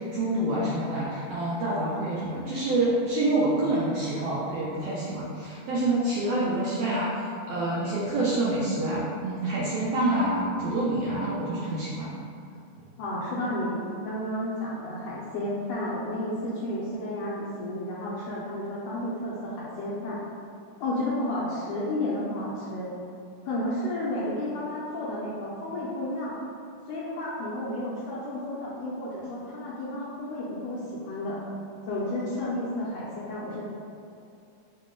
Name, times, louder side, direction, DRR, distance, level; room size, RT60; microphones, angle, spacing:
voice 1, 0.0-12.1, right 1 dB, 75° right, -8 dB, 1.4 m, -27 dB
voice 2, 13.0-13.8 14.0-20.2 20.8-22.9 23.4-26.4 26.9-31.4 31.9-33.6, left 1 dB, 80° left, -7 dB, 1.6 m, -32 dB
5.9 x 2.1 x 3.6 m, 2.6 s
omnidirectional pair, 3.5 m